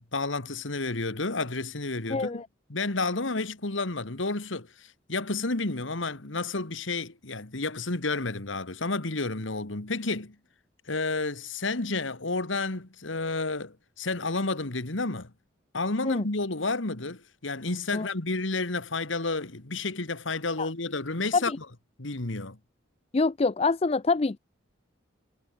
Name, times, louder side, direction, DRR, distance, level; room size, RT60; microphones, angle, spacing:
voice 1, 0.1-2.4 2.7-10.4 10.9-15.3 15.7-21.7 22.0-22.6, left 3 dB, 80° left, 2.0 m, -31 dB
voice 2, 2.1-2.5 16.1-16.2 17.9-18.1 20.6-20.7 21.3-21.6 23.1-24.4, left 3 dB, 30° left, 0.4 m, -26 dB
head